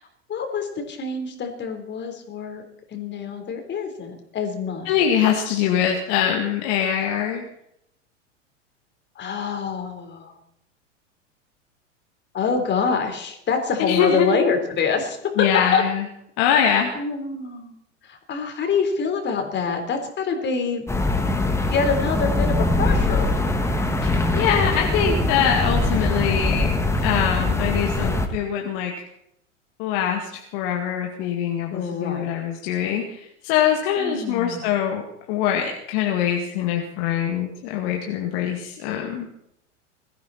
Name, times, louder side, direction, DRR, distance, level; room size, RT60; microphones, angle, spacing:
voice 1, 0.3-2.6 2.9-4.9 9.2-10.3 12.3-15.5 15.7-15.8 16.9-17.8 18.0-20.9 21.7-23.4 31.7-32.3 34.0-34.6, left 5 dB, 30° left, 5 dB, 4.0 m, -26 dB
voice 2, 4.9-7.5 13.8-14.3 15.4-16.1 16.4-17.0 24.0-26.7 27.0-29.1 29.8-35.0 35.3-39.3, left 8 dB, 50° left, 2 dB, 2.2 m, -23 dB
sound 1, 20.9-28.3, left 2 dB, 5° left, 2.1 m, -22 dB
21.5 x 15.0 x 4.3 m, 0.78 s
figure-of-eight pair, 90°, 37 cm